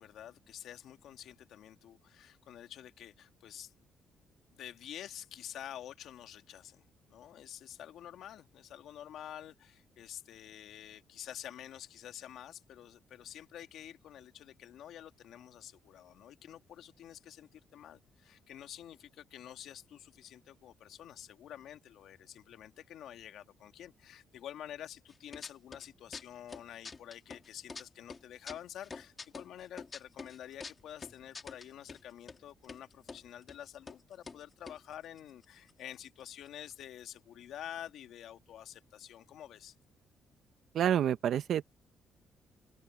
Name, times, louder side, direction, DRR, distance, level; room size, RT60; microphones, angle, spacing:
voice 1, 0.0-3.7 4.5-6.8 7.1-39.7, left 11 dB, 75° left, 2.0 m, -48 dB
sound 1, 25.1-25.9 26.1-27.8 28.1-32.0 32.3-32.4 32.6-33.2 33.5-33.6 33.9-34.0 34.3-35.9 36.2-36.3 36.5-36.8, left 4 dB, 35° left, 2.0 m, -46 dB
voice 2, 40.7-41.6, right 10 dB, 70° right, 1.1 m, -28 dB
open air
cardioid pair, 90°, 0 cm